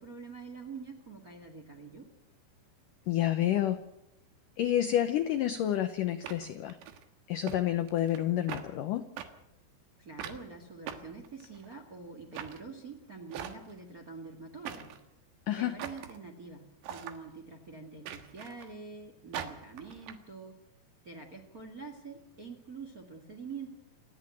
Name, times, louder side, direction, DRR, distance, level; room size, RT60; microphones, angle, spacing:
voice 1, 0.0-2.1 10.0-14.9 15.5-20.6 21.0-23.7, right 4 dB, 35° right, 4 dB, 1.4 m, -46 dB
voice 2, 3.1-3.8 4.6-6.8 7.3-9.0 15.5-15.7, left 12 dB, 80° left, 9 dB, 1.9 m, -29 dB
sound 1, 5.3-5.4 6.2-7.0 7.5-7.6 7.9-8.2 8.5-8.7 9.2-9.3 10.2-10.4 10.9-11.7 12.3-12.6 13.3-13.8 14.6-15.0 15.8-16.2 16.8-17.2 18.1-18.7 19.3-20.1, right 9 dB, 80° right, 3.6 m, -41 dB
28.5 x 10.5 x 9.1 m, 0.85 s
omnidirectional pair, 5.0 m